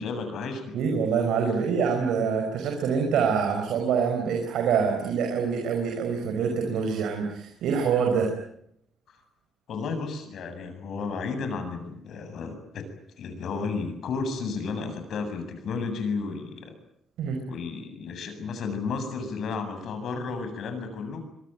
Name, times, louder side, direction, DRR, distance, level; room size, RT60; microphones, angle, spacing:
voice 1, 0.0-0.8 9.1-9.2 9.7-12.9 13.2-16.7 17.5-21.3, left 4 dB, 65° left, 8 dB, 7.9 m, -33 dB
voice 2, 0.7-8.3 17.2-17.4, right 6 dB, 80° right, 3 dB, 5.6 m, -25 dB
26.0 x 23.0 x 9.2 m, 0.73 s
cardioid pair, 90°, 0 cm